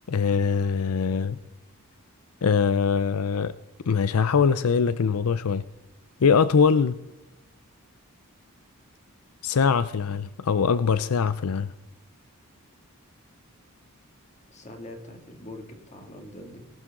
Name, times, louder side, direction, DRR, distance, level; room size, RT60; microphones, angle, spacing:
voice 1, 0.1-1.4 2.4-3.5 3.9-5.6 6.2-7.0 9.4-11.7, left 6 dB, 85° left, 15 dB, 0.5 m, -22 dB
voice 2, 14.5-16.7, left 1 dB, 35° left, 4 dB, 2.5 m, -43 dB
19.5 x 12.5 x 3.8 m, 0.96 s
head